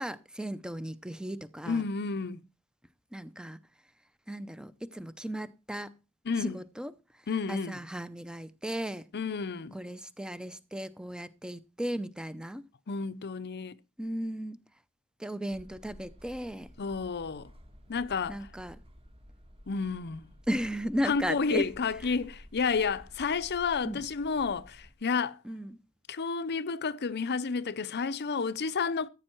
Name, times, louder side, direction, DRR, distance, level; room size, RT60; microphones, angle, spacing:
voice 1, 0.0-1.8 3.1-3.6 4.3-5.9 6.4-6.9 7.5-9.1 9.7-12.6 14.0-14.6 15.2-16.7 18.3-18.8 20.5-21.7 23.8-24.0 25.4-25.8, equal, 5° right, 0.6 m, -35 dB
voice 2, 1.7-2.4 6.3-6.6 7.3-7.8 9.1-9.8 12.9-13.8 16.8-17.5 17.9-18.5 19.7-20.3 21.0-25.4 26.1-29.1, left 5 dB, 50° left, 0.6 m, -31 dB
sound 1, 15.5-24.9, equal, 25° right, 1.5 m, -53 dB
14.0 x 8.7 x 4.5 m
head